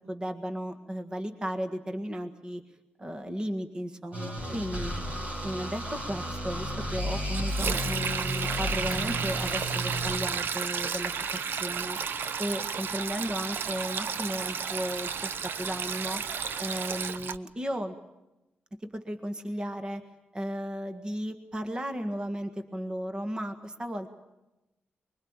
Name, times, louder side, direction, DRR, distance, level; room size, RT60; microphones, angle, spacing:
voice 1, 0.1-2.6 3.0-4.9 5.4-11.2 11.6-12.0 12.4-16.2 16.6-18.0 18.8-20.0 20.3-24.1, equal, 20° right, 7 dB, 1.8 m, -35 dB
sound 1, 4.1-10.2, equal, 40° right, 4.2 m, -33 dB
Sink (filling or washing), 7.3-17.4, right 6 dB, 70° right, 0.9 m, -32 dB
24.5 x 22.5 x 8.9 m, 0.96 s
wide cardioid pair, 135°, 4 cm